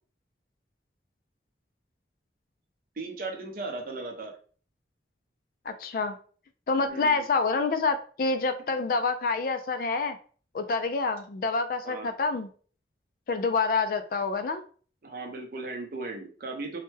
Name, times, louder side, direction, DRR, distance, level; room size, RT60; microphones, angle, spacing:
voice 1, 3.0-4.3 6.9-7.2 11.8-12.1 15.0-16.8, right 3 dB, 50° right, 3 dB, 0.6 m, -37 dB
voice 2, 5.7-6.2 6.7-10.2 10.5-12.5 13.3-14.6, left 4 dB, 50° left, 9 dB, 0.3 m, -27 dB
3.2 x 2.1 x 3.2 m, 0.42 s
head